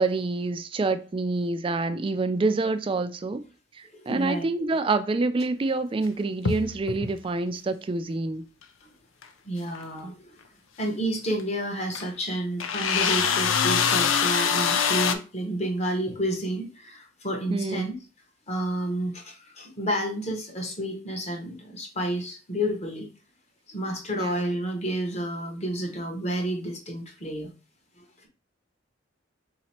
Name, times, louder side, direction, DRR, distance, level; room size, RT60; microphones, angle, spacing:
voice 1, 0.0-3.4 3.7-8.5 17.5-17.9 24.2-24.6, right 3 dB, 25° right, 0.3 m, -27 dB
voice 2, 3.9-4.4 9.5-10.4 10.8-18.0 18.5-23.1 23.7-27.5, right 1 dB, 30° left, 1.1 m, -30 dB
sound 1, 6.4-7.2 9.2-9.3 9.7-9.8 11.4-11.5 11.9-12.0 12.6-15.1, left 6 dB, 75° left, 0.5 m, -24 dB
4.0 x 2.9 x 4.3 m
head